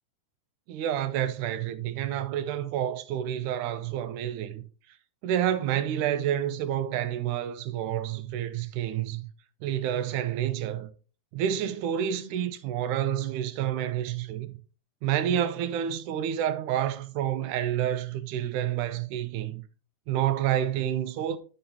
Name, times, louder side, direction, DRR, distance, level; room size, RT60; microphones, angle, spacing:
voice 1, 0.7-4.6 5.2-9.2 9.6-10.9 11.3-14.5 15.0-19.6 20.1-21.4, right 10 dB, 85° right, 2.1 m, -29 dB
9.5 x 5.6 x 2.8 m
omnidirectional pair, 3.6 m